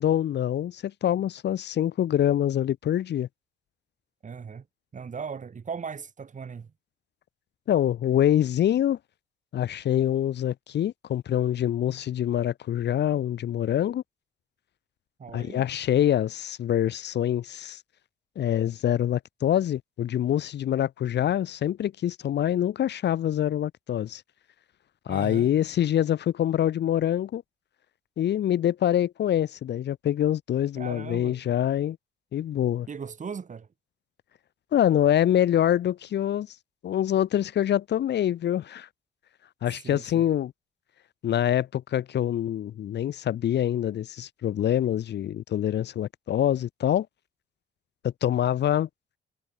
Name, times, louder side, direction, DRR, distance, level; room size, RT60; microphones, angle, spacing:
voice 1, 0.0-3.3 7.7-9.0 9.5-14.0 15.3-17.8 18.4-24.2 25.1-27.4 28.2-32.0 32.3-32.9 34.7-36.5 36.8-38.9 39.6-40.5 41.2-47.1 48.0-48.9, left 11 dB, 60° left, 0.9 m, -25 dB
voice 2, 4.2-4.7 4.9-6.7 15.2-15.6 25.1-25.5 30.8-31.4 32.9-33.7 39.8-40.3, right 6 dB, 40° right, 2.7 m, -38 dB
cardioid pair, 90°, 20 cm